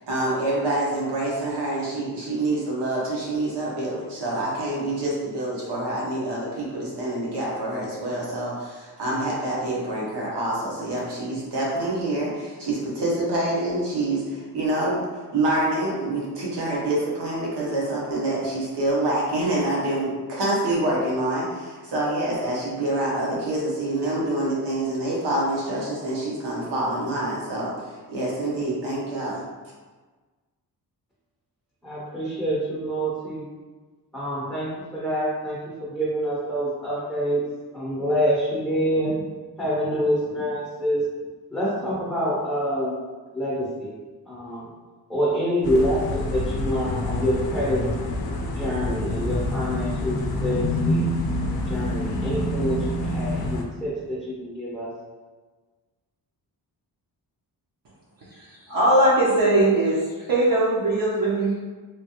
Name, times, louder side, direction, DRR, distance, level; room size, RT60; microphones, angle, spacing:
voice 1, 0.0-15.0 15.3-29.4, right 1 dB, 85° right, -5 dB, 1.0 m, -26 dB
voice 2, 31.8-33.4 34.1-37.4 37.7-39.1 39.6-41.0 41.5-42.9 43.3-43.9 44.3-44.6 45.1-47.8 48.6-51.1 51.7-54.9, equal, 5° left, -8 dB, 0.6 m, -26 dB
sound 1, 45.6-53.6, left 1 dB, 65° left, 0.5 m, -27 dB
voice 3, 58.4-60.0 60.3-61.5, right 1 dB, 55° right, -7 dB, 0.7 m, -20 dB
3.1 x 2.4 x 2.8 m, 1.3 s
wide cardioid pair, 145°, 41 cm